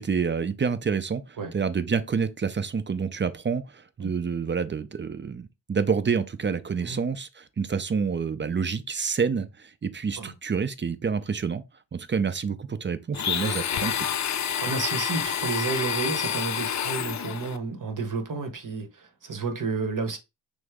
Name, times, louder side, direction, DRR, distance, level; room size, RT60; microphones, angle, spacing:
voice 1, 0.0-11.6 11.9-14.0, right 6 dB, 25° right, 0.5 m, -28 dB
Domestic sounds home sounds, 13.1-17.6, left 8 dB, 40° left, 0.4 m, -28 dB
voice 2, 14.6-20.2, right 4 dB, 45° right, 1.1 m, -31 dB
6.1 x 2.1 x 3.5 m
cardioid pair, 80°, 44 cm